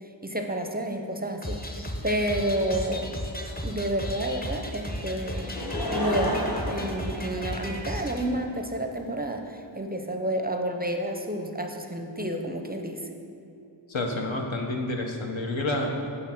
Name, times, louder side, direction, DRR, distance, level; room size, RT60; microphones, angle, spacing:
voice 1, 0.0-3.2 3.6-5.5 5.9-13.1, right 1 dB, 20° right, 4 dB, 0.4 m, -30 dB
sound 1, 1.4-8.2, equal, 20° left, 0.7 m, -35 dB
Laughter / Crowd, 5.4-8.0 8.7-8.8, left 1 dB, 50° left, 1.2 m, -31 dB
voice 2, 13.9-15.9, left 2 dB, 75° left, 1 dB, 0.9 m, -29 dB
8.3 x 3.2 x 5.8 m, 2.7 s
wide cardioid pair, 45°, 46 cm